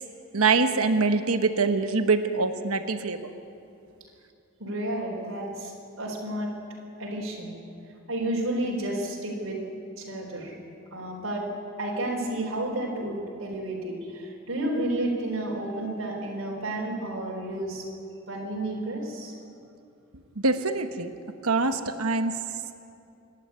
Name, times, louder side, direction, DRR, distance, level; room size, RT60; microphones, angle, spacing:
voice 1, 0.3-3.2 20.4-21.1 21.4-22.3, right 4 dB, 90° right, 8 dB, 1.2 m, -24 dB
voice 2, 4.6-6.5 7.0-7.6 8.1-9.6 10.0-10.5 10.9-11.5 11.8-17.9 18.3-19.3, right 1 dB, 65° right, -3 dB, 4.1 m, -31 dB
27.0 x 11.5 x 9.4 m, 2.7 s
head